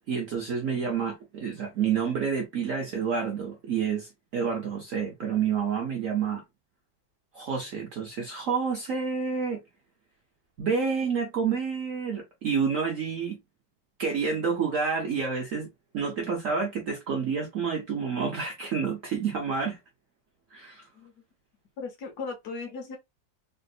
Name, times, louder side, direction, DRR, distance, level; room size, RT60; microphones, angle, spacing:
voice 1, 0.1-6.4 7.3-9.6 10.6-13.4 14.0-15.7 15.9-19.8 20.5-20.9, right 6 dB, 65° right, 0.8 m, -29 dB
voice 2, 21.8-23.0, left 4 dB, 65° left, 1.3 m, -37 dB
3.5 x 2.6 x 2.2 m
omnidirectional pair, 2.0 m